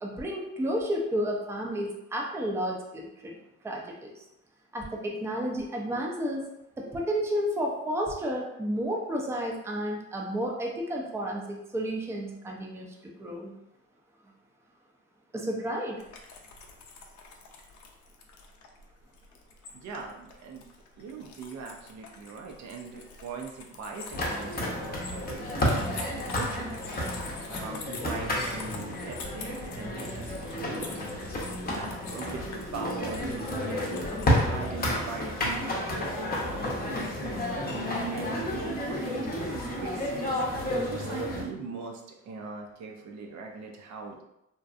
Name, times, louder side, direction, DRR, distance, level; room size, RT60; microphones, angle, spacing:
voice 1, 0.0-3.4 3.6-4.2 4.7-6.4 6.8-12.9 13.2-13.5 15.3-16.0, equal, 10° right, -1 dB, 0.4 m, -31 dB
sound 1, 16.0-34.7, left 4 dB, 75° left, 0.5 m, -46 dB
voice 2, 19.7-20.6 21.0-26.7 27.5-31.1 31.7-33.9 34.5-40.4 40.8-44.2, right 4 dB, 65° right, 1 dB, 0.5 m, -41 dB
sound 2, 24.1-41.4, left 1 dB, 30° left, 0.7 m, -31 dB
2.6 x 2.2 x 2.4 m, 0.85 s
cardioid pair, 90°, 30 cm